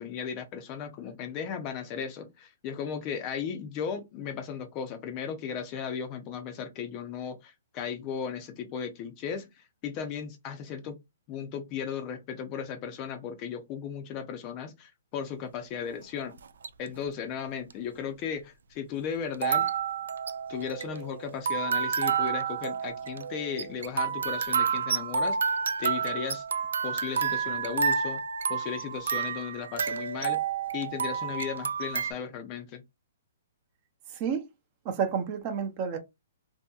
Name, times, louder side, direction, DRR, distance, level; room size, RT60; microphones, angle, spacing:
voice 1, 0.0-11.0 11.3-16.4 16.8-19.7 20.5-26.4 26.8-28.2 28.5-30.4 30.7-32.8, left 7 dB, 25° left, 0.5 m, -36 dB
sound 1, 16.4-16.9 17.7-17.8 19.3-32.1, right 6 dB, 85° right, 0.3 m, -30 dB
voice 2, 34.1-34.5 34.8-36.0, right 7 dB, 30° right, 0.5 m, -30 dB
2.7 x 2.6 x 2.3 m
hypercardioid pair, 160°, 0 cm